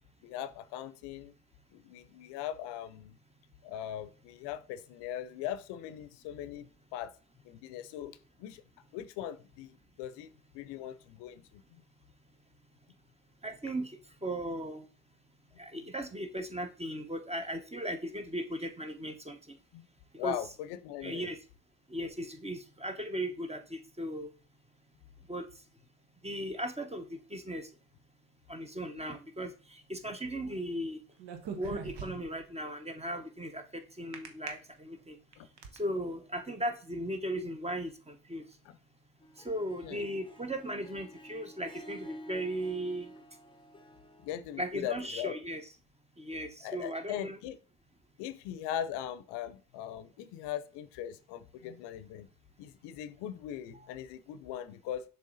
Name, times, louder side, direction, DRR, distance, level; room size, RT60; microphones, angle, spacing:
voice 1, 0.2-1.3 1.7-3.2 3.6-7.1 7.4-8.6 8.9-11.8 15.7-15.8 19.7-19.9 20.2-21.3 35.4-35.5 38.6-38.8 39.8-40.0 44.2-45.4 46.6-47.6 48.2-52.3 52.6-55.0, left 11 dB, 90° left, 0.6 m, -40 dB
voice 2, 13.4-14.9 15.6-19.6 20.2-20.4 21.0-21.4 21.9-24.3 25.3-25.5 26.2-27.7 28.5-31.0 31.6-35.2 35.7-38.4 39.4-43.1 44.6-45.6 46.2-47.4 53.7-53.9, right 1 dB, 15° right, 1.1 m, -37 dB
sound 1, 31.2-32.4 34.1-34.5 35.1-35.8, right 7 dB, 80° right, 1.1 m, -41 dB
Harp, 39.2-44.5, equal, 10° left, 0.7 m, -51 dB
6.6 x 3.5 x 4.0 m
supercardioid pair, 60°, 40 cm